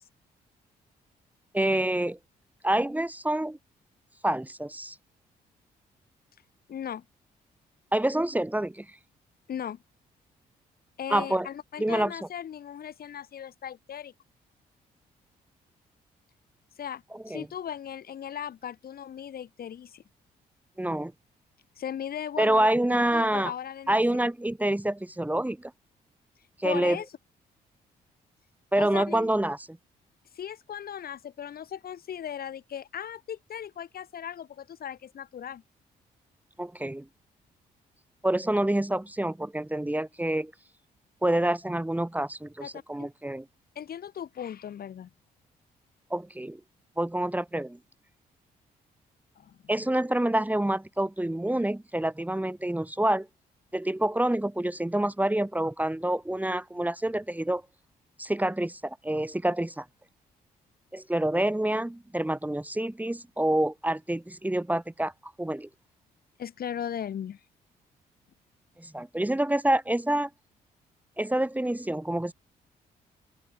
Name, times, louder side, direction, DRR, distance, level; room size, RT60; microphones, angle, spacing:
voice 1, 1.5-2.2 2.6-3.6 4.2-4.9 7.9-8.9 11.1-11.5 11.8-12.2 17.1-17.5 20.8-21.1 22.4-23.5 23.9-25.7 26.6-27.0 28.7-29.8 36.6-37.0 38.2-40.5 41.2-43.4 46.1-46.6 47.0-47.8 49.7-53.3 53.7-57.6 58.2-59.8 60.9-65.7 68.8-70.3 71.2-72.3, right 1 dB, 10° right, 2.9 m, -27 dB
voice 2, 6.7-7.0 9.5-9.8 11.0-14.1 16.8-20.0 21.8-24.0 26.6-27.0 28.7-29.3 30.3-35.6 42.6-42.7 43.0-43.1 43.7-45.1 49.4-49.6 66.4-67.4, left 9 dB, 65° left, 6.7 m, -37 dB
open air
supercardioid pair, 65°, 17 cm